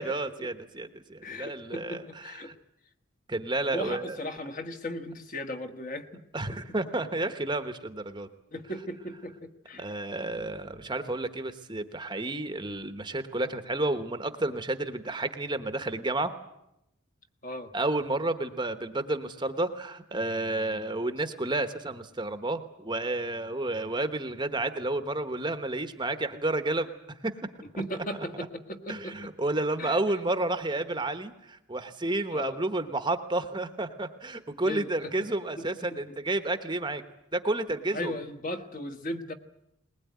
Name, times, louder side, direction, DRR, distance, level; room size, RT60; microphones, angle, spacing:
voice 1, 0.0-2.5 3.3-4.2 6.3-8.3 9.8-16.3 17.7-26.9 27.2-27.3 28.9-37.0 37.3-38.1, right 2 dB, 20° right, 9 dB, 1.1 m, -31 dB
voice 2, 1.2-2.6 3.7-6.2 6.5-6.6 8.5-9.9 17.4-17.7 27.8-29.3 29.8-30.0 32.3-32.6 34.6-35.1 35.6-35.7 35.9-36.2 37.9-39.3, left 1 dB, 40° left, 5 dB, 1.6 m, -37 dB
21.0 x 20.5 x 9.5 m, 0.82 s
head